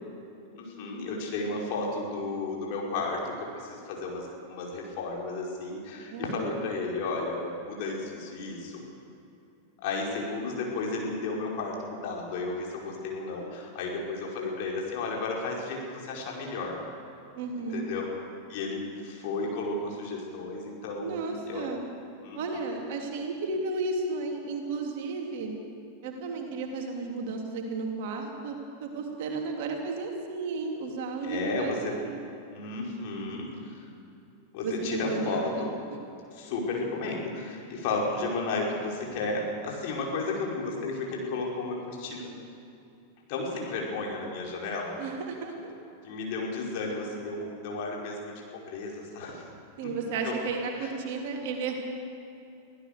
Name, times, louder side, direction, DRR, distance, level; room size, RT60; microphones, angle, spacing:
voice 1, 0.5-8.8 9.8-16.8 17.7-18.1 18.5-21.7 22.2-22.7 31.2-31.9 32.5-33.8 34.5-35.7 36.3-42.3 43.3-45.0 46.0-48.3 48.7-49.4 49.8-49.9 50.2-50.3 50.8-50.9, left 3 dB, 50° left, -2 dB, 5.1 m, -33 dB
voice 2, 6.1-6.6 17.3-17.9 21.0-21.8 22.3-25.5 26.0-32.2 34.6-35.7 45.0-45.7 49.8-51.7, right 4 dB, 50° right, 1 dB, 3.2 m, -33 dB
24.0 x 16.0 x 6.8 m, 2.7 s
figure-of-eight pair, 90°, 0 cm